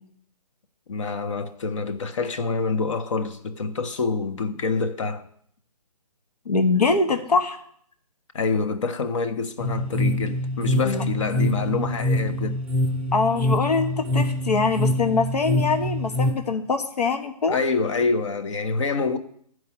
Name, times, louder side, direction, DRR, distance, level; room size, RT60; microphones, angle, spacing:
voice 1, 0.9-5.3 8.3-12.6 17.5-19.2, left 4 dB, 50° left, 1.0 m, -26 dB
voice 2, 6.4-7.6 10.8-11.0 13.1-17.6, left 4 dB, 80° left, 1.3 m, -23 dB
sound 1, 9.6-16.3, left 1 dB, ahead, 0.5 m, -25 dB
11.0 x 4.8 x 8.3 m
hypercardioid pair, 150°, 20 cm